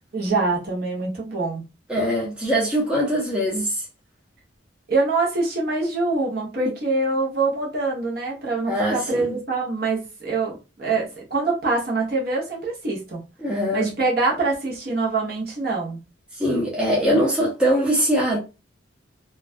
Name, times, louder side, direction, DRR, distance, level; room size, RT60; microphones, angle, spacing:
voice 1, 0.1-1.6 4.9-13.2 13.7-16.0, right 3 dB, 50° right, 0.8 m, -24 dB
voice 2, 1.9-3.8 8.6-9.4 13.4-13.9 16.4-18.4, equal, 5° right, 0.5 m, -22 dB
2.4 x 2.2 x 2.4 m
head